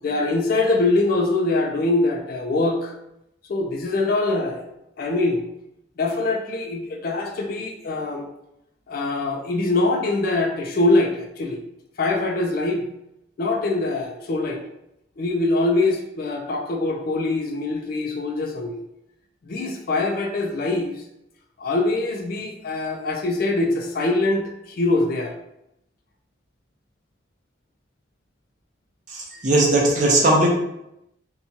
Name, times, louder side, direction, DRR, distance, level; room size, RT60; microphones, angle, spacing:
voice 1, 0.0-2.9 3.5-4.7 5.0-5.4 6.0-8.3 8.9-11.6 12.0-12.8 13.4-14.6 15.2-18.8 19.4-20.9 21.6-25.3, left 2 dB, 50° left, 2 dB, 0.4 m, -23 dB
voice 2, 29.1-30.5, right 2 dB, 40° right, -2 dB, 0.6 m, -18 dB
2.9 x 2.2 x 2.6 m, 0.83 s
head